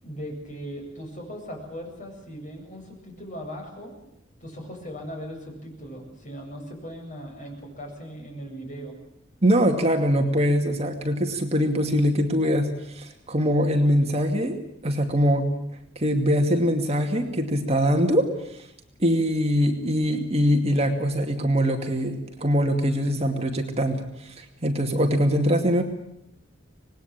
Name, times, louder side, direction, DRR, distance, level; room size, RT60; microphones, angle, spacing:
voice 1, 0.0-3.9 4.4-9.0, equal, 40° left, 1 dB, 7.9 m, -38 dB
voice 2, 9.4-15.5 16.0-18.3 19.0-25.8, equal, 30° right, 3 dB, 2.4 m, -23 dB
26.0 x 20.5 x 8.9 m, 0.78 s
head